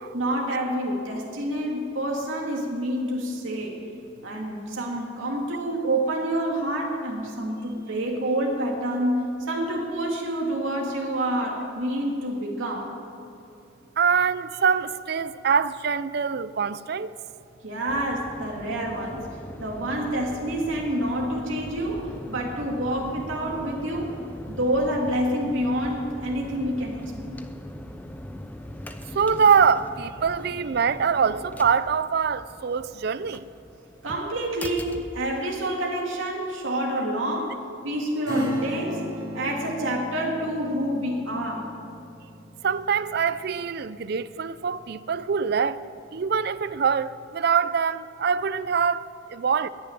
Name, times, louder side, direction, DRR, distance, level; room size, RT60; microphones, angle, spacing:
voice 1, 0.1-3.7 4.2-12.9 17.6-19.2 19.6-27.4 34.0-37.6 37.8-39.1 39.3-41.7, right 1 dB, 75° right, 2.4 m, -28 dB
voice 2, 14.0-17.1 29.1-33.5 42.6-45.8 46.1-49.7, right 6 dB, 50° right, 0.4 m, -24 dB
sound 1, 17.9-35.9, left 1 dB, 10° left, 0.6 m, -41 dB
Acoustic guitar / Strum, 38.3-44.5 44.8-44.9, equal, 20° right, 3.1 m, -35 dB
20.5 x 6.9 x 9.4 m
head